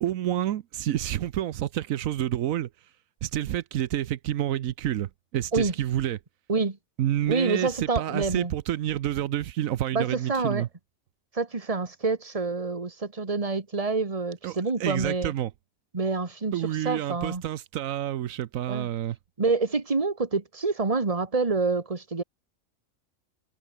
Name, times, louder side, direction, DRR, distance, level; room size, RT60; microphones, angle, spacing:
voice 1, 0.0-2.7 3.2-6.2 7.0-10.7 14.4-15.5 16.5-19.2, right 12 dB, 85° right, 1.1 m, -29 dB
voice 2, 7.3-8.5 9.9-10.6 11.3-15.3 15.9-17.4 18.7-18.9 19.4-22.2, right 3 dB, 25° right, 1.8 m, -27 dB
omnidirectional pair, 1.4 m